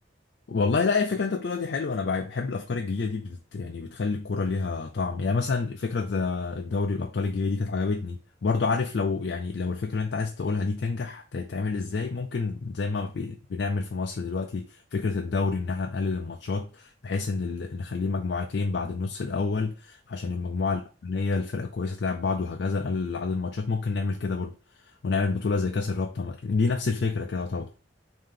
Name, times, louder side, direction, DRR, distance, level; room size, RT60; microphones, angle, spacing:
voice 1, 0.5-24.6 25.0-27.7, left 4 dB, 65° left, 0.4 m, -28 dB
5.0 x 2.8 x 3.6 m
head